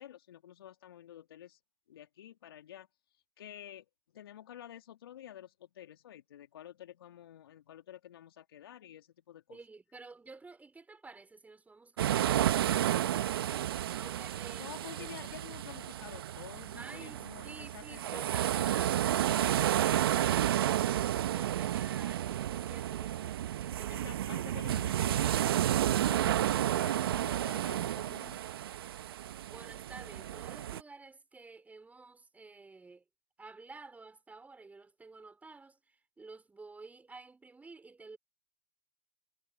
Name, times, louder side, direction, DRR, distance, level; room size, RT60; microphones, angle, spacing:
voice 1, 0.0-1.6 1.9-2.9 3.4-3.9 4.1-9.6 14.6-18.4 23.9-28.4, left 11 dB, 70° left, 3.3 m, -50 dB
voice 2, 9.5-15.1 16.8-19.0 19.4-24.4 29.5-33.0 33.4-38.2, right 3 dB, 10° right, 5.6 m, -52 dB
sound 1, 12.0-30.8, right 12 dB, 70° right, 1.5 m, -31 dB
hypercardioid pair, 95°, 13 cm